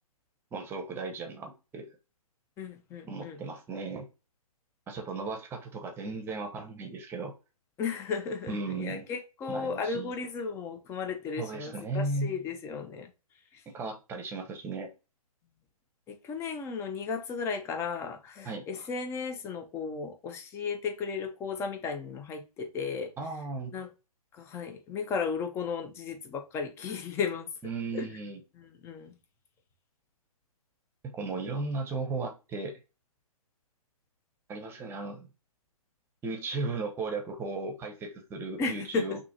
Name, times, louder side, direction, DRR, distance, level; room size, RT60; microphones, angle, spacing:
voice 1, 0.5-1.9 3.1-4.1 4.9-7.3 8.5-9.0 9.5-10.1 11.4-12.3 13.7-14.9 18.4-18.7 23.2-23.7 27.6-28.4 31.0-32.8 34.5-35.3 36.2-39.2, right 3 dB, 10° right, 0.9 m, -36 dB
voice 2, 2.6-3.4 7.8-13.1 13.5-13.6 16.1-23.1 23.7-23.9 24.3-27.5 27.9-28.1 28.6-29.1 38.6-39.2, left 5 dB, 15° left, 0.7 m, -35 dB
6.1 x 2.8 x 2.8 m
hypercardioid pair, 140°, 19 cm